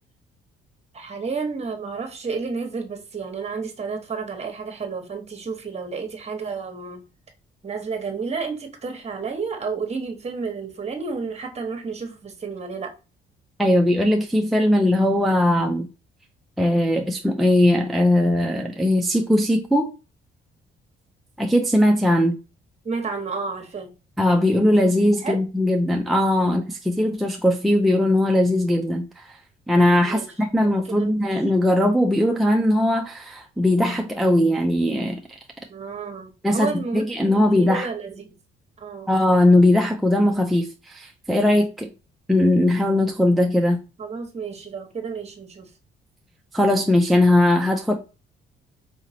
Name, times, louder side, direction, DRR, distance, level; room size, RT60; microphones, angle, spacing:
voice 1, 0.9-7.0 7.6-12.9 22.8-23.9 25.2-25.4 26.4-26.6 30.0-30.3 30.6-31.4 35.7-38.3 38.8-39.1 44.0-45.7, right 4 dB, 35° right, 1.2 m, -31 dB
voice 2, 13.6-15.9 16.6-19.9 21.4-22.4 24.2-29.2 29.7-35.2 36.4-37.9 39.1-41.9 42.3-43.8 46.5-47.9, left 1 dB, ahead, 0.5 m, -19 dB
4.9 x 2.8 x 2.8 m
cardioid pair, 90°, 20 cm